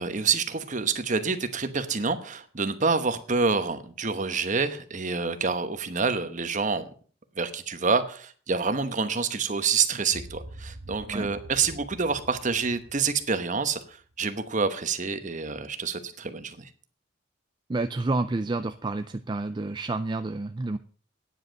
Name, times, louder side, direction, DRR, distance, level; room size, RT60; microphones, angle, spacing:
voice 1, 0.0-6.9 7.4-16.7, right 5 dB, 40° right, 10 dB, 1.1 m, -27 dB
sound 1, 10.1-14.4, right 1 dB, 60° right, 1.0 m, -45 dB
voice 2, 17.7-20.8, right 2 dB, 25° right, 9 dB, 0.4 m, -29 dB
9.7 x 7.9 x 6.4 m, 0.43 s
head